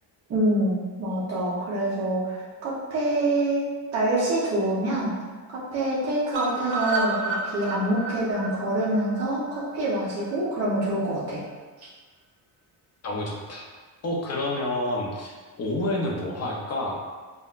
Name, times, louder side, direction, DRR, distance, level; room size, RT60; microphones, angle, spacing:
voice 1, 0.3-3.6 3.9-5.1 5.5-11.4 11.8-11.9, right 1 dB, 35° right, -9 dB, 0.8 m, -26 dB
sound 1, 6.3-10.3 10.7-10.8 11.1-11.2 11.5-11.6, right 3 dB, 70° right, 0.9 m, -31 dB
voice 2, 13.0-13.7 14.0-16.9, left 1 dB, 35° left, -1 dB, 0.6 m, -29 dB
5.4 x 2.2 x 2.4 m, 1.4 s
cardioid pair, 165°, 45 cm